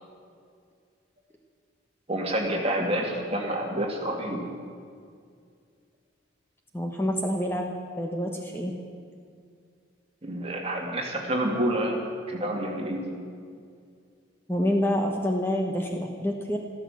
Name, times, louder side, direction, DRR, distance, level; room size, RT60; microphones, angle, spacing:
voice 1, 2.1-4.4 10.2-12.0 12.3-13.0, right 1 dB, 30° right, 0 dB, 2.3 m, -28 dB
voice 2, 6.7-8.7 14.5-16.6, equal, 10° left, 1 dB, 1.1 m, -27 dB
14.0 x 13.0 x 7.3 m, 2.2 s
head